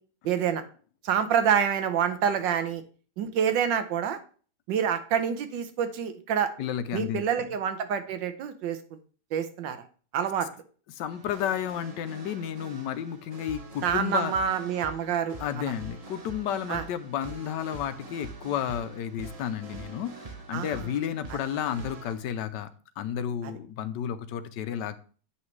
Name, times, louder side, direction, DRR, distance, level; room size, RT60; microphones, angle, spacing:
voice 1, 0.2-0.6 1.0-2.8 3.2-4.2 4.7-6.5 6.9-9.0 9.3-9.8 10.1-10.5 13.8-15.7 16.7-16.8 20.5-20.9 23.4-23.5, right 8 dB, 85° right, 9 dB, 1.5 m, -27 dB
voice 2, 6.6-7.2 10.9-14.3 15.4-22.7 23.0-25.0, left 9 dB, 80° left, 11 dB, 1.3 m, -32 dB
sound 1, 11.1-22.1, right 4 dB, 35° right, 0.6 m, -44 dB
8.8 x 5.6 x 3.2 m, 0.41 s
omnidirectional pair, 1.9 m